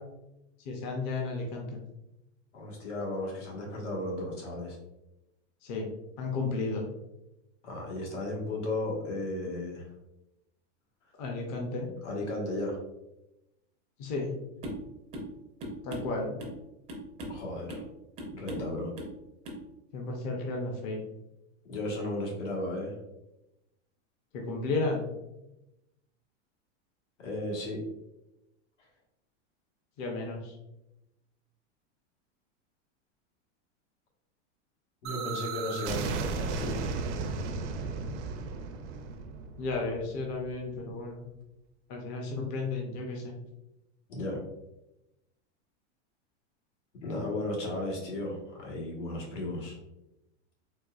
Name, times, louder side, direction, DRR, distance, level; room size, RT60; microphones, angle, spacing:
voice 1, 0.7-1.8 5.6-5.9 6.2-6.8 11.2-11.9 14.0-14.3 15.8-16.4 19.9-21.0 24.3-25.1 30.0-30.5 39.6-41.2 41.9-43.3, left 3 dB, 40° left, 1 dB, 0.5 m, -33 dB
voice 2, 2.5-4.8 7.6-9.8 12.0-12.8 17.3-17.8 18.3-18.9 21.7-22.9 27.2-27.8 35.0-36.8 44.1-44.4 47.0-49.8, left 1 dB, 85° left, -2 dB, 1.4 m, -34 dB
sound 1, 14.6-14.9 15.1-15.3 15.6-16.6 16.9-17.4 17.7-17.9 18.2-18.7 19.0-19.2 19.4-19.6, equal, 20° right, 0.4 m, -39 dB
sound 2, 35.0-40.8, right 4 dB, 80° right, 0.6 m, -35 dB
4.2 x 2.3 x 2.3 m, 0.91 s
supercardioid pair, 155°, 35 cm